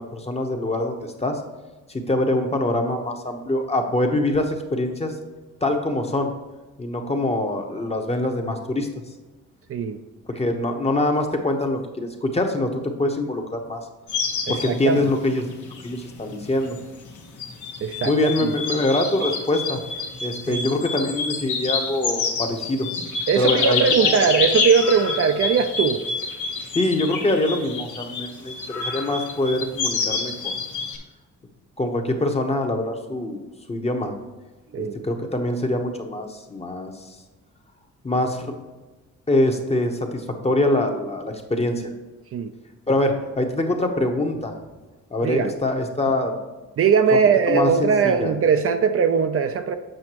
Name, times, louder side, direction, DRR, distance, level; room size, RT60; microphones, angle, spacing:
voice 1, 0.0-1.4 1.9-5.1 5.6-6.3 6.8-8.9 10.4-13.8 14.5-15.5 15.8-16.8 18.0-19.8 20.2-22.9 23.3-23.8 26.7-30.6 31.8-33.4 33.7-34.1 34.8-36.9 38.0-38.5 39.3-41.9 42.9-44.6 45.1-46.4 47.1-47.2 47.5-48.3, left 1 dB, 20° left, 4 dB, 1.0 m, -24 dB
sound 1, 14.1-31.0, left 4 dB, 75° left, 1.2 m, -28 dB
voice 2, 14.5-15.1 17.8-18.1 18.4-18.5 20.5-20.6 23.3-26.0 34.7-35.0 42.3-42.5 45.2-45.5 46.8-49.8, right 6 dB, 50° right, 7 dB, 0.5 m, -20 dB
7.7 x 5.8 x 3.0 m, 1.2 s
cardioid pair, 90°, 30 cm